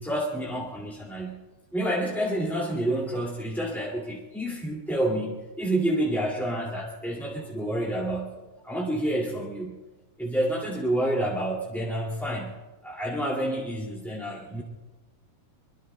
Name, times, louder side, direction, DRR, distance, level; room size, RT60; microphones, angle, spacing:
voice 1, 0.0-1.4 1.7-8.4 8.6-9.8 10.2-12.6 12.8-14.6, right 1 dB, ahead, -5 dB, 0.7 m, -29 dB
25.0 x 23.0 x 2.2 m, 1.2 s
omnidirectional pair, 4.5 m